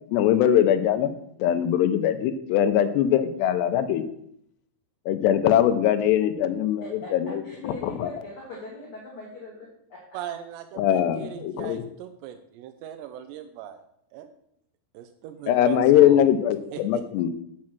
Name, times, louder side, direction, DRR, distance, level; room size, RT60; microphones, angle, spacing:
voice 1, 0.1-1.1 1.4-4.0 5.1-6.8 7.1-8.1 10.8-11.8 15.5-17.3, left 10 dB, 85° left, 9 dB, 2.7 m, -21 dB
voice 2, 6.8-10.0, left 1 dB, 45° left, -4 dB, 1.9 m, -41 dB
voice 3, 10.1-13.8 14.1-14.3 14.9-16.2 16.7-17.0, right 10 dB, 85° right, 7 dB, 2.8 m, -38 dB
7.6 x 7.3 x 5.9 m, 0.72 s
omnidirectional pair, 5.0 m